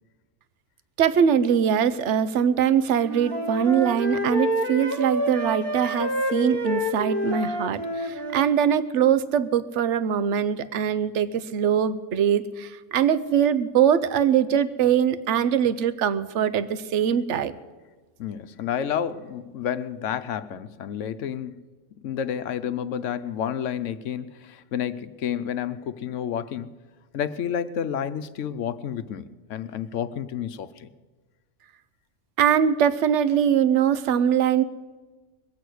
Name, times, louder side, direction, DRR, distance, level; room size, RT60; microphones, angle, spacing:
voice 1, 1.0-17.5 32.4-34.6, right 8 dB, 70° right, 1.0 m, -22 dB
Wind instrument woodwind instrument, 3.0-8.5, equal, 45° right, 1.8 m, -28 dB
voice 2, 18.2-21.6 22.0-26.7 27.1-30.9, left 9 dB, 75° left, 1.0 m, -30 dB
21.0 x 8.3 x 6.3 m
omnidirectional pair, 1.3 m